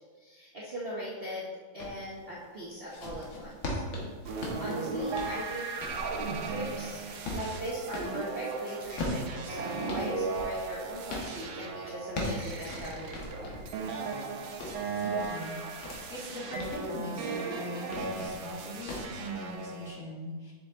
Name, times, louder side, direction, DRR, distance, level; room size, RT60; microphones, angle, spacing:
voice 1, 0.2-1.5 1.7-3.8 4.3-7.0 7.3-13.5, equal, 40° right, -6 dB, 0.9 m, -40 dB
sound 1, 1.8-2.0 2.6-8.2 8.8-11.3 11.8-13.7 14.2-16.0 16.4-16.8 17.7-18.4 18.9-19.1, left 1 dB, 80° left, 2.1 m, -38 dB
Guitar Glitch, 4.3-20.0, right 4 dB, 80° right, 1.6 m, -36 dB
voice 2, 14.8-20.5, equal, 40° left, -4 dB, 1.9 m, -42 dB
7.2 x 6.2 x 3.6 m, 1.5 s
omnidirectional pair, 2.1 m